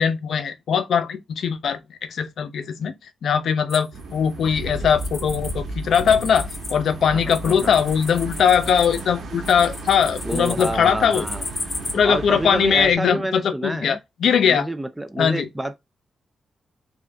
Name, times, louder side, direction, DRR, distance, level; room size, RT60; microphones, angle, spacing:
voice 1, 0.0-1.8 2.1-2.9 3.2-11.3 11.9-14.7 15.2-15.5, left 7 dB, 70° left, 0.6 m, -20 dB
sound 1, 3.7-5.5 5.8-11.9, left 3 dB, 30° left, 0.9 m, -35 dB
sound 2, 3.9-12.9, right 2 dB, 75° right, 1.3 m, -34 dB
voice 2, 7.1-7.7 10.3-11.4 12.0-14.0 14.4-15.7, right 1 dB, 10° right, 0.3 m, -28 dB
3.7 x 3.5 x 3.3 m
wide cardioid pair, 120°, 0 cm